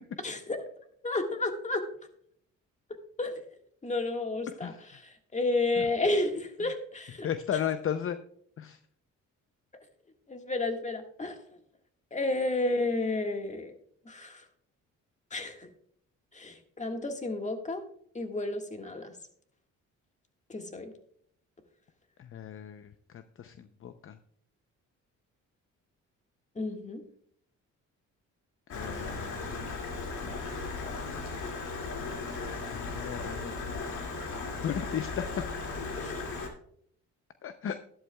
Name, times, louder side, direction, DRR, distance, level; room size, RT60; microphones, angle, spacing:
voice 1, 0.2-0.6 1.0-1.8 3.2-3.4 3.8-4.7 5.0-7.3 10.3-11.4 12.1-13.7 14.0-14.4 15.3-15.7 16.3-17.8 18.1-19.1 20.5-20.9 26.5-27.0 36.0-36.3, left 2 dB, 25° left, 5 dB, 1.7 m, -31 dB
voice 2, 7.2-8.2 8.6-8.8 22.2-24.2 28.7-29.7 30.8-31.2 32.7-33.7 34.6-35.3 37.4-37.8, left 9 dB, 45° left, 10 dB, 0.6 m, -36 dB
Stream, 28.7-36.5, left 3 dB, 75° left, 2.4 m, -36 dB
12.0 x 11.5 x 2.3 m, 0.64 s
cardioid pair, 90°, 30 cm